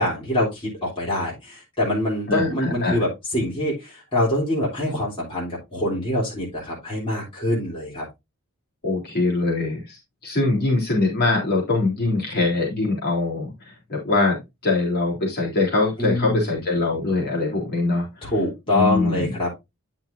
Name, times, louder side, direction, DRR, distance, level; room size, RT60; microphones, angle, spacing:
voice 1, 0.0-8.0 16.0-16.5 18.2-19.6, left 1 dB, 25° left, -5 dB, 3.4 m, -24 dB
voice 2, 2.3-3.0 8.8-10.0 10.2-14.4 14.6-18.3 18.7-19.3, left 3 dB, 45° left, -3 dB, 3.6 m, -23 dB
9.8 x 5.9 x 2.6 m, 0.21 s
head